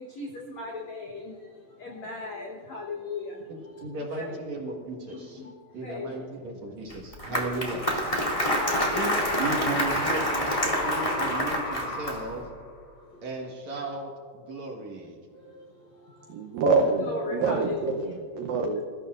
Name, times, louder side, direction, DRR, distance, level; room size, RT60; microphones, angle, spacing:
voice 1, 0.0-4.4 5.1-6.3 7.6-7.7 8.5-9.3 13.1-13.3 14.6-14.7 15.3-16.6 17.0-18.2, left 3 dB, 75° left, -1 dB, 1.6 m, -38 dB
voice 2, 3.5-5.4 5.7-7.8 8.9-9.1 9.4-12.5 13.2-15.2, right 3 dB, 55° right, -1 dB, 2.2 m, -35 dB
Applause, 6.9-12.4, equal, 20° left, 0.8 m, -28 dB
sound 1, 7.6-12.7, left 2 dB, 45° left, 3.8 m, -32 dB
voice 3, 16.3-18.8, right 4 dB, 80° right, 4 dB, 2.0 m, -26 dB
27.5 x 15.5 x 2.5 m, 2.1 s
omnidirectional pair, 5.1 m